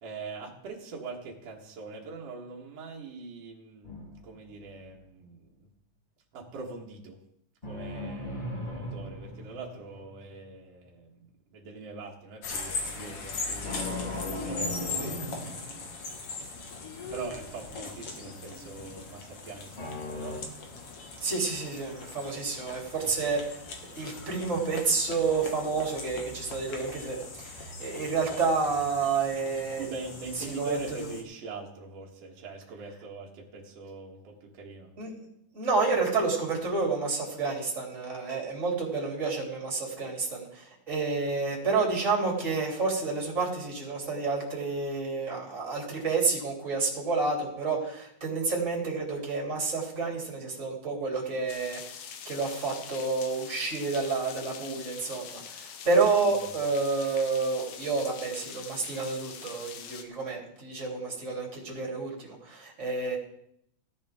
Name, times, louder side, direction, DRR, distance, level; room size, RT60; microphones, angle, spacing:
voice 1, 0.0-5.7 6.3-7.2 7.7-11.2 11.5-13.8 14.4-15.6 17.1-20.4 29.8-34.9, right 4 dB, 55° right, -2 dB, 2.5 m, -42 dB
sound 1, 3.8-5.0 7.6-10.3 13.6-16.3 19.8-20.4, left 1 dB, 20° left, 1.5 m, -38 dB
sound 2, 12.4-31.2, left 4 dB, 55° left, 2.4 m, -40 dB
voice 2, 21.2-23.6 23.9-29.9 30.4-30.8 35.0-35.1 35.5-51.8 52.2-63.2, right 4 dB, 20° right, -2 dB, 3.3 m, -29 dB
sound 3, 51.5-60.0, left 7 dB, 70° left, 2.2 m, -44 dB
16.5 x 10.5 x 3.6 m, 0.72 s
omnidirectional pair, 3.7 m